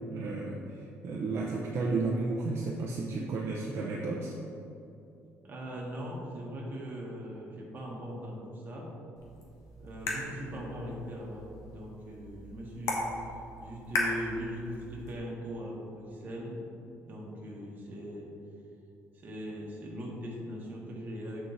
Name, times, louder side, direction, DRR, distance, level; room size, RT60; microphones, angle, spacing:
voice 1, 0.1-0.6 1.0-4.3, right 3 dB, 55° right, -3 dB, 0.7 m, -32 dB
voice 2, 5.4-9.0 9.8-13.1 13.6-16.6 17.0-18.3 19.1-21.4, equal, 35° right, -3 dB, 1.6 m, -40 dB
sound 1, 9.2-15.2, left 2 dB, 70° left, 1.3 m, -38 dB
7.6 x 4.5 x 4.1 m, 2.7 s
cardioid pair, 130°, 5 cm